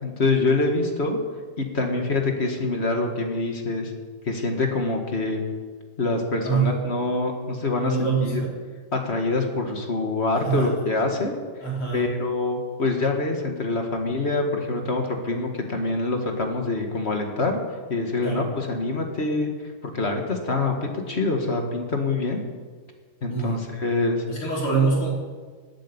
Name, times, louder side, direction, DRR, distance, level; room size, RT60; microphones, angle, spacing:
voice 1, 0.0-1.2 1.6-3.9 4.2-5.4 6.0-8.4 8.9-11.3 11.9-17.6 17.9-19.5 19.8-22.4 23.2-24.2, left 3 dB, 30° left, 3 dB, 1.8 m, -25 dB
voice 2, 7.8-8.5 10.4-10.7 11.6-12.1 18.2-18.4 23.3-23.6 24.3-25.1, right 5 dB, 80° left, -5 dB, 5.5 m, -24 dB
13.5 x 8.8 x 9.7 m, 1.5 s
omnidirectional pair, 2.4 m